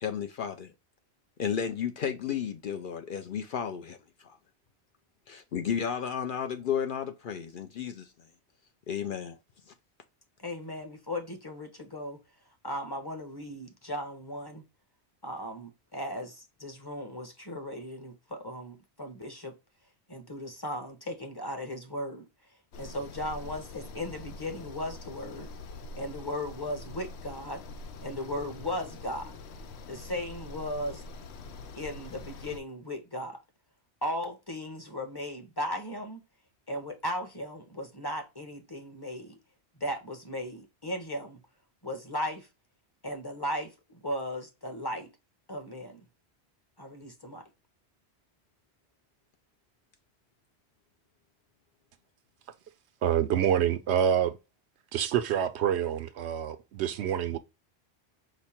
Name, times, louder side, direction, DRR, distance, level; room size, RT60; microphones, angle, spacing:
voice 1, 0.0-0.7 1.4-4.0 4.2-4.4 5.3-8.1 8.9-9.4, left 8 dB, 60° left, 0.6 m, -33 dB
voice 2, 10.4-12.2 12.6-14.6 15.2-19.5 20.1-22.2 22.8-25.5 26.0-27.6 28.0-29.4 29.9-31.0 31.7-33.4 34.0-36.2 36.7-39.4 39.8-41.4 41.8-42.5 43.0-43.7 44.0-45.1 45.5-46.0 46.8-47.4, left 1 dB, 25° left, 0.9 m, -36 dB
sound 1, 22.7-32.6, left 3 dB, 80° left, 0.9 m, -44 dB
voice 3, 53.0-54.4 54.9-57.4, right 9 dB, 80° right, 0.8 m, -27 dB
5.0 x 2.1 x 4.2 m
omnidirectional pair, 1.1 m